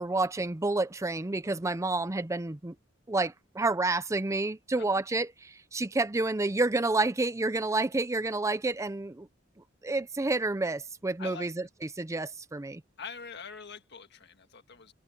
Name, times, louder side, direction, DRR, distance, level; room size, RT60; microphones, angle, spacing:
voice 1, 0.0-2.7 3.1-9.3 9.8-11.7 12.0-12.8, right 2 dB, 15° right, 0.5 m, -29 dB
voice 2, 11.2-11.7 13.0-14.9, left 5 dB, 60° left, 1.7 m, -44 dB
head